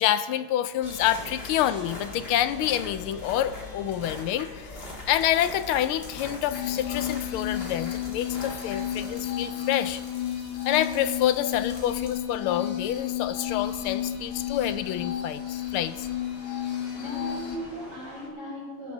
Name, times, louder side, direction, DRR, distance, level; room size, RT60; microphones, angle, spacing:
voice 1, 0.0-4.7 5.1-10.0 10.6-16.1, left 11 dB, 85° left, 12 dB, 1.5 m, -27 dB
sound 1, 0.8-18.3, left 2 dB, 25° left, 2.4 m, -43 dB
sound 2, 6.5-17.5, left 11 dB, 55° left, 1.9 m, -32 dB
voice 2, 16.9-18.9, right 1 dB, 70° right, -5 dB, 5.4 m, -37 dB
20.5 x 11.0 x 2.7 m, 1.4 s
omnidirectional pair, 2.3 m